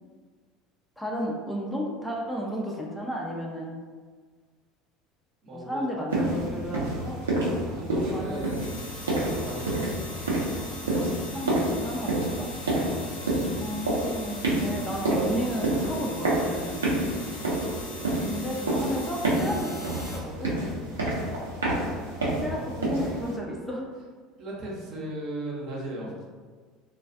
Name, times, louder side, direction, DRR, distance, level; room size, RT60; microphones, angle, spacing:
voice 1, 1.0-3.8 5.5-7.2 8.1-8.4 11.3-12.5 13.6-16.8 18.2-20.5 22.4-23.9, equal, 5° left, -3 dB, 0.5 m, -33 dB
voice 2, 5.4-5.9 7.7-8.7 9.2-10.4 22.5-22.7 24.4-26.2, right 1 dB, 50° right, -3 dB, 0.7 m, -37 dB
sound 1, 6.1-23.4, right 1 dB, 85° right, 0.5 m, -29 dB
sound 2, 8.1-20.2, left 2 dB, 80° left, 0.6 m, -41 dB
2.3 x 2.3 x 2.5 m, 1.5 s
hypercardioid pair, 70°, 0 cm